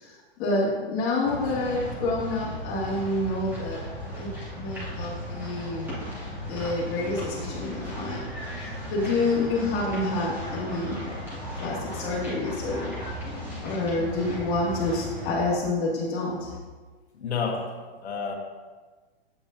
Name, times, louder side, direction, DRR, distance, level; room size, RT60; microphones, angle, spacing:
voice 1, 0.0-3.9 4.2-5.9 6.5-8.2 8.6-11.0 11.6-12.9 13.6-16.5, left 2 dB, 30° left, -4 dB, 2.2 m, -28 dB
sound 1, 1.2-15.3, equal, 5° right, 2.3 m, -36 dB
voice 2, 17.1-17.7 18.0-18.3, left 5 dB, 85° left, 1 dB, 1.2 m, -29 dB
8.4 x 6.9 x 2.8 m, 1.3 s
hypercardioid pair, 145°, 32 cm